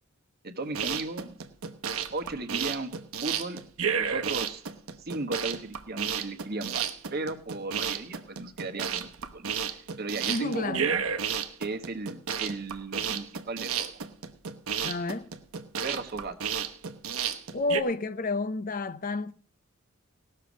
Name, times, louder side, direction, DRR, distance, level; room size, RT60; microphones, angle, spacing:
voice 1, 0.4-1.4 2.1-2.9 3.2-3.6 4.0-4.6 5.0-11.0 11.6-14.0 15.8-16.4, right 3 dB, 45° right, 1.1 m, -36 dB
sound 1, 0.6-17.8, right 7 dB, 80° right, 1.0 m, -32 dB
voice 2, 10.3-10.9 14.8-15.3 17.5-19.3, left 3 dB, 40° left, 0.5 m, -30 dB
18.0 x 6.6 x 5.0 m
head